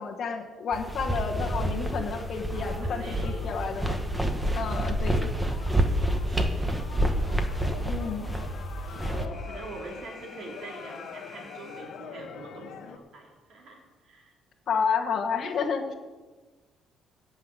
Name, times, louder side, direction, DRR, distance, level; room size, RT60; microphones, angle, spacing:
voice 1, 0.0-4.0 4.5-5.3 7.9-8.2 14.7-15.9, left 6 dB, 40° left, 0 dB, 1.2 m, -30 dB
sound 1, 0.7-9.2, right 1 dB, 5° right, 1.0 m, -28 dB
sound 2, 1.6-13.0, left 8 dB, 65° left, 0.9 m, -46 dB
voice 2, 2.5-3.6 4.8-5.3 6.0-6.8 7.6-8.0 8.8-14.3, right 2 dB, 50° right, -1 dB, 3.6 m, -45 dB
Alarm, 9.3-12.3, left 3 dB, 20° left, 2.5 m, -49 dB
14.0 x 5.6 x 9.0 m, 1.3 s
cardioid pair, 165°, 0 cm